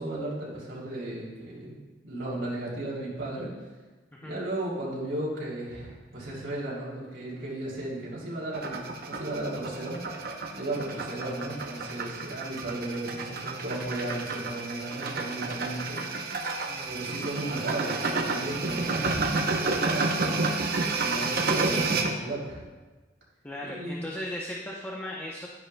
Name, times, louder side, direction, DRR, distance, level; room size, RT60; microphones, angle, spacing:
voice 1, 0.0-1.8 2.0-3.5 4.2-10.0 10.5-16.0 16.9-20.4 21.0-22.6 23.6-24.1, right 1 dB, 90° right, -7 dB, 3.2 m, -35 dB
sound 1, 8.5-22.1, right 3 dB, 55° right, 0.8 m, -30 dB
voice 2, 23.4-25.5, left 1 dB, 10° left, -3 dB, 0.7 m, -37 dB
11.5 x 10.5 x 2.2 m, 1.3 s
head